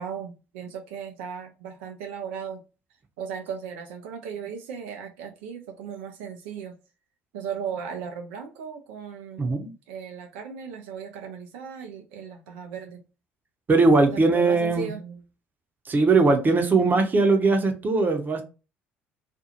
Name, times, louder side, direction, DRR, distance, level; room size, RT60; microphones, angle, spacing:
voice 1, 0.0-2.6 3.2-6.7 7.3-9.6 9.9-13.0 14.1-15.2, right 7 dB, 75° right, 0.5 m, -36 dB
voice 2, 9.4-9.7 13.7-14.9 15.9-18.4, right 3 dB, 30° right, 0.8 m, -20 dB
2.5 x 2.4 x 2.8 m
hypercardioid pair, 60°, 6 cm